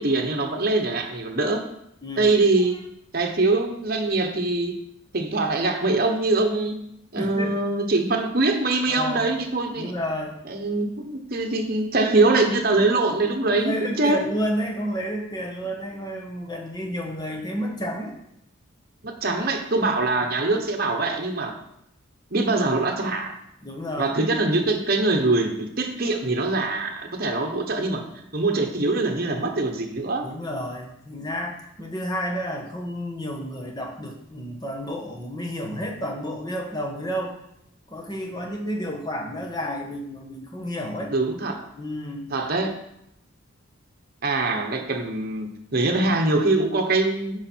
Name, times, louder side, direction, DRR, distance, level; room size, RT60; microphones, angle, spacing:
voice 1, 0.0-1.6 2.2-2.8 3.1-4.7 5.1-6.8 7.1-9.9 10.4-14.3 19.0-21.6 22.3-23.4 24.0-28.0 28.3-30.3 41.1-41.7 42.3-42.8 44.2-47.5, right 2 dB, 45° right, 4 dB, 1.0 m, -23 dB
voice 2, 2.0-2.3 7.1-7.6 8.9-9.3 9.7-10.4 13.5-18.2 23.6-24.2 30.2-37.4 37.9-41.1 41.7-42.3 44.5-44.6, equal, 20° left, 1 dB, 1.2 m, -31 dB
9.6 x 4.9 x 4.5 m, 0.77 s
head